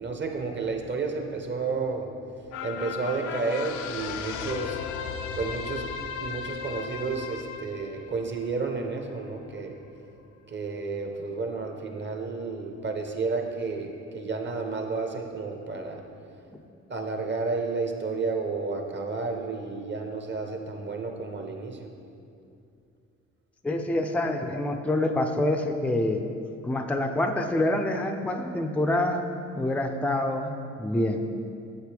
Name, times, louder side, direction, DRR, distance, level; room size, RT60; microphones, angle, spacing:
voice 1, 0.0-2.1 2.6-4.8 5.4-5.9 6.2-9.7 10.5-16.1 16.9-21.9, right 4 dB, 35° right, 3 dB, 0.9 m, -31 dB
sound 1, 2.5-9.2 9.6-9.7, left 7 dB, 85° left, 0.5 m, -36 dB
voice 2, 23.6-26.2 26.6-29.3 29.5-30.5 30.8-31.2, left 1 dB, 5° left, 5 dB, 0.4 m, -26 dB
8.1 x 7.2 x 3.4 m, 2.5 s
cardioid pair, 90°, 30 cm